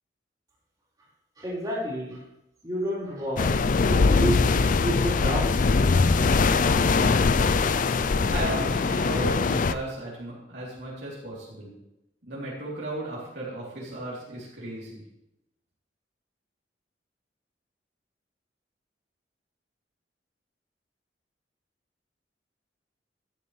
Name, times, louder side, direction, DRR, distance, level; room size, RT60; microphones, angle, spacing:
voice 1, 1.4-2.2 2.6-5.6 6.2-6.3 7.3-7.6, equal, 20° right, -7 dB, 4.0 m, -31 dB
sound 1, 3.4-9.7, left 4 dB, 45° left, 0.4 m, -22 dB
voice 2, 8.3-11.8 12.2-15.0, right 1 dB, 65° right, -6 dB, 3.4 m, -35 dB
14.0 x 9.7 x 3.3 m, 0.88 s
head